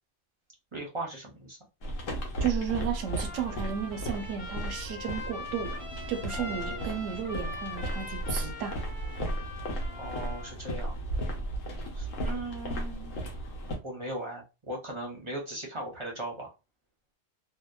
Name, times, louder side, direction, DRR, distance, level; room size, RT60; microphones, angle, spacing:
voice 1, 0.7-1.6 6.3-7.0 10.0-11.0 11.9-13.2 13.8-16.5, right 1 dB, 30° right, 0.6 m, -38 dB
sound 1, 1.8-13.8, right 1 dB, 85° left, 1.1 m, -35 dB
voice 2, 2.4-5.8 6.1-8.8, right 8 dB, 80° right, 0.9 m, -33 dB
Trumpet, 2.9-10.5, left 2 dB, 35° left, 0.6 m, -42 dB
2.8 x 2.1 x 2.2 m
omnidirectional pair, 1.3 m